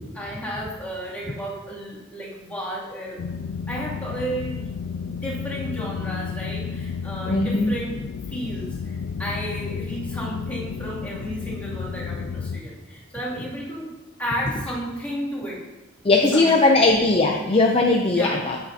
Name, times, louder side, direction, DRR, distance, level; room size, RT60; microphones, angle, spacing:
voice 1, 0.1-3.2 3.7-4.7 5.0-8.0 8.3-13.9 14.2-15.6 16.2-16.8 18.1-18.5, equal, 10° left, -9 dB, 2.6 m, -33 dB
sound 1, 3.2-12.6, left 6 dB, 75° left, 0.3 m, -32 dB
voice 2, 7.3-7.7 16.0-18.6, left 2 dB, 30° left, 1 dB, 0.6 m, -19 dB
8.8 x 8.4 x 2.8 m, 1.1 s
head